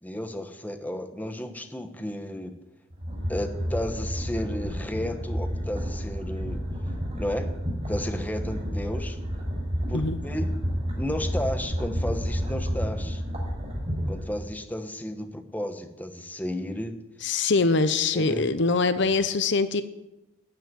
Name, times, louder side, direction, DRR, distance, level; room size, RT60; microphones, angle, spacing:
voice 1, 0.0-2.5 3.3-6.6 7.2-7.5 7.9-9.2 9.9-10.5 10.9-13.2 14.1-17.0 18.1-18.5, left 1 dB, 10° left, 7 dB, 1.1 m, -33 dB
sound 1, 2.9-14.5, equal, 30° right, 4.4 m, -30 dB
voice 2, 17.2-19.8, left 3 dB, 60° left, 12 dB, 0.7 m, -23 dB
12.5 x 8.2 x 9.4 m, 0.94 s
head